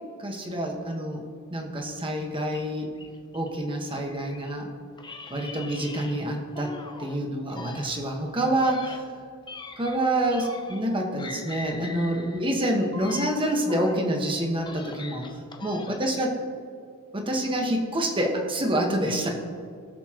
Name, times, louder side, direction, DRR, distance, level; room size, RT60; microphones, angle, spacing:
voice 1, 0.2-1.2 1.5-2.9 3.3-4.7 5.3-6.7 7.0-9.1 9.8-16.4 17.1-19.4, right 1 dB, 25° right, 1 dB, 1.4 m, -27 dB
sound 1, 2.5-4.6 5.0-7.2 7.5-10.9 11.2-14.1 14.5-16.2, left 3 dB, 20° left, 0.7 m, -42 dB
20.0 x 7.1 x 3.0 m, 2.2 s
head